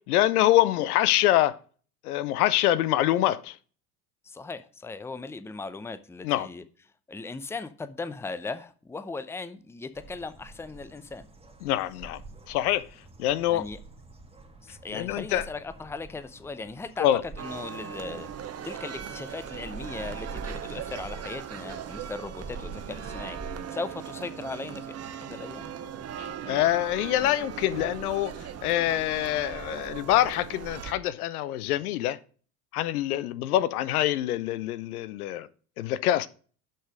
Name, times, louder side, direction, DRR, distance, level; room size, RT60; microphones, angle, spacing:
voice 1, 0.1-1.6 2.0-3.6 6.2-6.5 11.6-12.2 12.5-12.8 13.2-13.7 14.9-15.4 17.0-17.2 26.2-28.3 28.6-32.2 32.7-35.5 35.8-36.3, left 14 dB, 70° left, 0.7 m, -25 dB
voice 2, 4.2-6.6 7.1-11.3 13.5-13.8 14.6-18.3 18.6-24.9 25.2-25.7, left 3 dB, 5° left, 0.6 m, -38 dB
sound 1, 9.9-23.6, right 3 dB, 10° right, 2.0 m, -46 dB
sound 2, 17.4-30.9, right 9 dB, 35° right, 1.0 m, -39 dB
7.2 x 6.1 x 4.9 m
hypercardioid pair, 75°, 46 cm